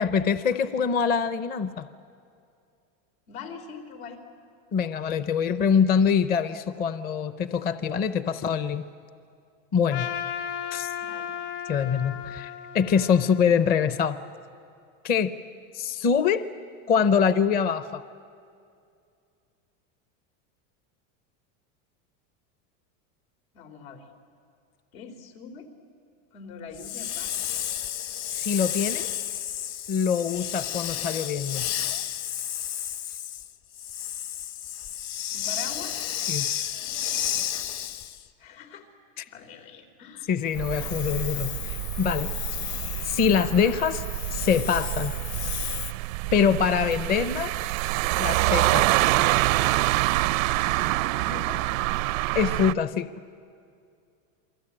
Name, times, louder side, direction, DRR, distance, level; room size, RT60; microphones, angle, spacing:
voice 1, 0.0-1.9 4.7-8.8 9.7-10.1 10.7-10.9 11.7-14.2 15.0-15.3 15.7-16.4 16.9-18.0 28.3-29.1 29.9-31.7 36.3-36.5 40.3-42.3 43.0-44.0 44.3-45.1 46.3-47.5 48.2-48.9 52.3-53.1, left 7 dB, 25° left, 12 dB, 0.6 m, -24 dB
voice 2, 3.3-4.2 11.0-11.4 23.5-24.0 24.9-25.7 26.3-27.5 35.3-35.9 38.4-38.9 39.3-40.3 51.2-51.6, left 5 dB, 85° left, 4 dB, 3.9 m, -42 dB
Trumpet, 9.9-14.2, left 9 dB, 55° left, 2.3 m, -35 dB
Hiss, 26.7-38.2 40.5-45.9, left 11 dB, 40° left, 1.0 m, -32 dB
sound 1, 40.6-52.7, right 18 dB, 85° right, 0.6 m, -26 dB
28.0 x 23.5 x 8.8 m, 2.4 s
supercardioid pair, 150°, 39 cm